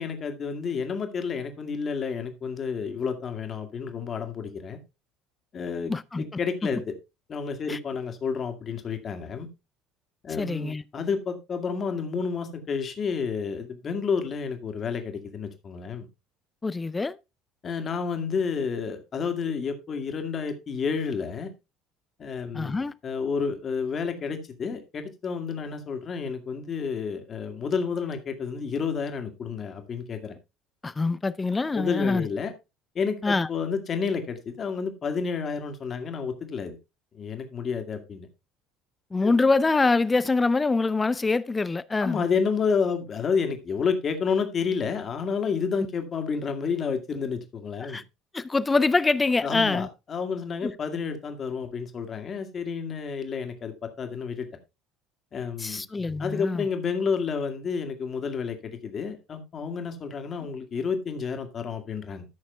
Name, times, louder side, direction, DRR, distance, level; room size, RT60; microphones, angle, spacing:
voice 1, 0.0-4.8 5.5-5.9 6.2-6.8 7.3-9.5 10.2-16.1 17.6-21.5 22.2-22.8 23.0-30.3 31.7-32.5 33.0-36.8 37.1-38.3 39.2-39.3 42.0-48.0 49.4-54.5 55.3-55.8 56.2-62.3, left 5 dB, 40° left, 2.1 m, -30 dB
voice 2, 5.9-6.2 7.7-7.8 10.3-10.8 16.6-17.2 22.5-22.9 30.8-32.3 33.2-33.5 39.1-42.2 47.8-48.0 48.3-49.9 50.6-50.7 55.6-56.7, left 3 dB, 20° left, 0.6 m, -25 dB
13.5 x 6.4 x 3.4 m
figure-of-eight pair, 60°, 0 cm